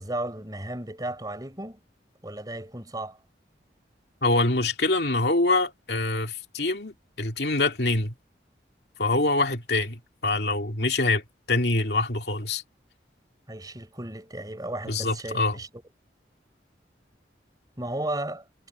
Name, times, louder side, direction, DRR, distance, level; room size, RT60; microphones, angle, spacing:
voice 1, 0.0-1.8 2.2-3.2 13.5-15.7 17.8-18.4, right 1 dB, 20° right, 5.9 m, -34 dB
voice 2, 4.2-8.1 9.0-12.6 14.9-15.6, left 2 dB, 65° left, 2.6 m, -25 dB
head